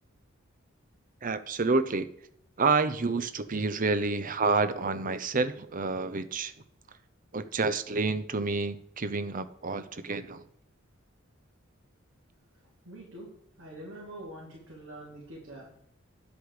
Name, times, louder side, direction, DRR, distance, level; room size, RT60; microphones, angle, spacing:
voice 1, 1.2-2.1 2.6-6.5 7.3-10.4, right 3 dB, 40° right, 11 dB, 0.8 m, -29 dB
voice 2, 12.8-13.3 13.6-15.7, right 1 dB, 60° right, -5 dB, 3.4 m, -45 dB
10.0 x 8.2 x 4.9 m, 0.71 s
head